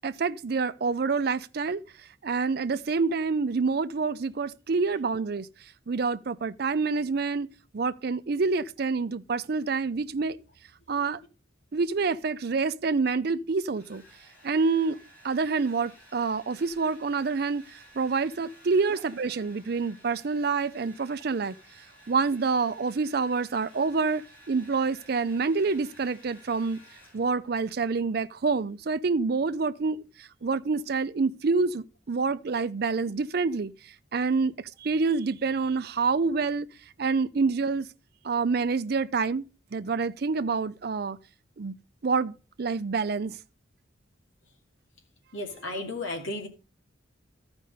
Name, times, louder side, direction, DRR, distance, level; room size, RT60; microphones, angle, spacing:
voice 1, 0.0-1.8 2.2-5.5 5.9-7.5 7.7-10.4 10.9-11.2 11.7-14.0 14.4-15.0 15.2-17.6 18.0-21.5 22.1-26.8 27.1-33.7 34.1-36.7 37.0-37.9 38.2-39.5 39.7-41.2 41.6-41.7 42.0-43.4, right 4 dB, 55° right, 0.5 m, -27 dB
Domestic sounds home sounds, 13.5-27.6, equal, 10° left, 6.2 m, -55 dB
voice 2, 45.3-46.5, left 2 dB, 90° left, 2.2 m, -34 dB
13.0 x 5.3 x 5.3 m
head